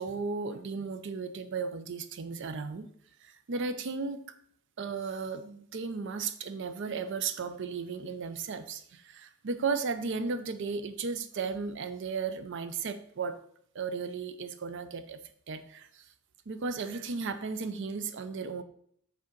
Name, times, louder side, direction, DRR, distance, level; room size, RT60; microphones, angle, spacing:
voice 1, 0.0-2.9 3.2-4.2 4.8-13.4 13.7-15.2 15.5-16.0 16.5-18.6, right 4 dB, 60° right, 11 dB, 0.5 m, -35 dB
6.0 x 3.8 x 4.5 m, 0.65 s
head